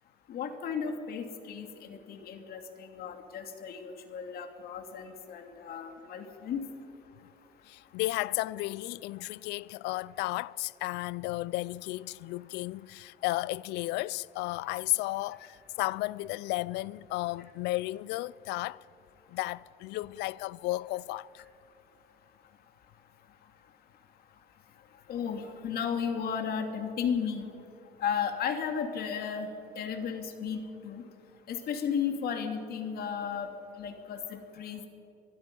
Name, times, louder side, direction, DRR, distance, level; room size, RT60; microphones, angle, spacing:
voice 1, 0.3-6.6 25.1-27.5 28.0-31.0 31.5-33.5 33.8-34.9, left 7 dB, 65° left, 2.6 m, -34 dB
voice 2, 7.7-18.8 19.3-21.4, left 19 dB, 90° left, 0.5 m, -33 dB
25.5 x 20.0 x 5.4 m
cardioid pair, 110°, 17 cm